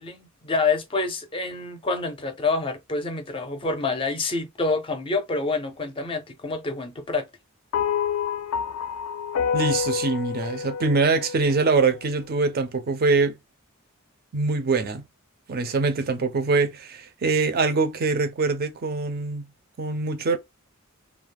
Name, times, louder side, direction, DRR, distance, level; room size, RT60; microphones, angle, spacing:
voice 1, 0.0-7.3, left 3 dB, 25° left, 0.5 m, -27 dB
sound 1, 7.7-12.2, left 7 dB, 85° left, 0.3 m, -28 dB
voice 2, 9.5-13.4 14.3-15.0 15.5-19.4 19.8-20.4, right 4 dB, 45° right, 0.5 m, -23 dB
2.3 x 2.0 x 3.3 m
head